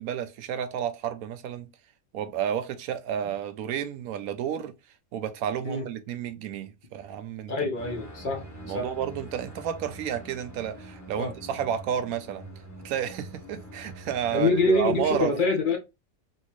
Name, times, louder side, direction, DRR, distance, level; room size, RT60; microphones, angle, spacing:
voice 1, 0.0-1.7 2.1-4.7 5.1-7.5 8.6-12.5 12.8-15.3, right 9 dB, 85° right, 1.0 m, -31 dB
voice 2, 7.5-8.4 8.7-8.9 11.2-11.3 14.3-15.8, left 2 dB, 40° left, 0.9 m, -25 dB
sound 1, 7.7-15.2, right 1 dB, 15° left, 0.7 m, -44 dB
3.2 x 2.7 x 3.0 m
omnidirectional pair, 1.5 m